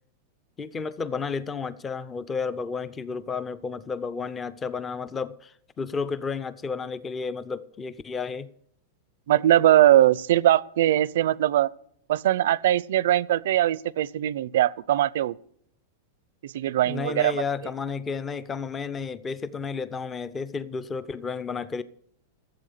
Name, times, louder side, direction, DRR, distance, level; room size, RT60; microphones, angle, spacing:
voice 1, 0.6-8.5 16.8-21.8, left 5 dB, 15° left, 0.6 m, -32 dB
voice 2, 9.3-11.7 12.1-15.4 16.4-17.3, right 13 dB, 70° right, 0.5 m, -21 dB
15.0 x 8.1 x 6.8 m
supercardioid pair, 160°, 0 cm